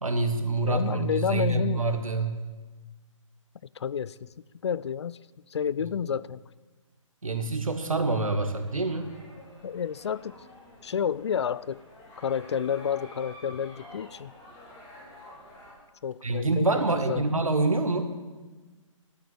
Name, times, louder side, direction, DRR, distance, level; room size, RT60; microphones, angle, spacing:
voice 1, 0.0-2.3 7.2-9.1 16.2-18.1, right 3 dB, 85° right, 7 dB, 1.9 m, -26 dB
voice 2, 0.6-1.9 3.7-4.3 4.6-5.2 5.5-6.4 9.6-10.4 10.8-11.8 12.2-14.3 16.0-16.8 17.1-17.4, left 8 dB, 55° left, 20 dB, 0.4 m, -30 dB
sound 1, 8.0-15.7, left 1 dB, 20° left, 3.7 m, -50 dB
11.5 x 10.0 x 8.0 m, 1.3 s
figure-of-eight pair, 140°, 17 cm